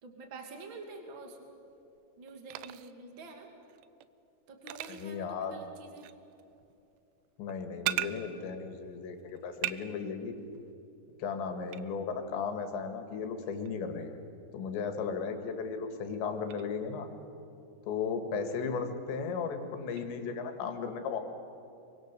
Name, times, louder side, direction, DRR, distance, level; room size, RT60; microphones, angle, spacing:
voice 1, 0.0-1.4 2.2-3.5 4.5-6.1, right 3 dB, 35° right, 3 dB, 2.6 m, -47 dB
sound 1, 1.7-3.0 3.6-4.1 4.6-5.2 6.0-8.1 8.4-9.8 10.1-10.7 11.7-11.8 13.5-13.7 16.1-16.2 16.5-16.6 20.0-20.1, right 15 dB, 80° right, 2.2 m, -39 dB
voice 2, 4.9-5.5 7.4-10.4 11.2-14.2 14.5-17.1 17.8-21.2, left 5 dB, 85° left, 6 dB, 4.1 m, -35 dB
26.0 x 24.0 x 6.9 m, 2.8 s
omnidirectional pair, 5.0 m